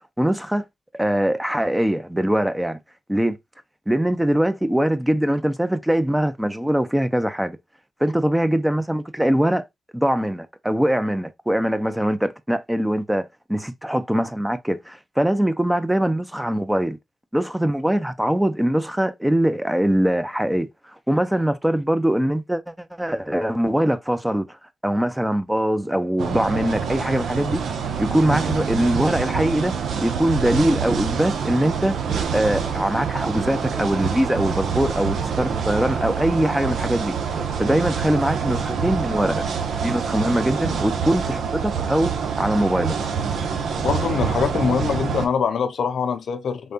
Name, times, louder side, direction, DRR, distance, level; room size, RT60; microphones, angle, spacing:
voice 1, 0.2-0.7 0.9-2.8 3.1-3.4 3.9-7.6 8.0-9.6 9.9-17.0 17.3-20.7 21.1-24.6 24.8-27.6 28.0-29.8 30.0-32.0 32.3-37.2 37.6-39.4 39.8-43.0, right 1 dB, 10° right, 0.6 m, -22 dB
sound 1, 26.2-45.3, right 6 dB, 75° right, 0.7 m, -26 dB
voice 2, 43.8-46.7, left 6 dB, 70° left, 0.5 m, -23 dB
3.8 x 3.3 x 2.7 m
supercardioid pair, 50°, 0 cm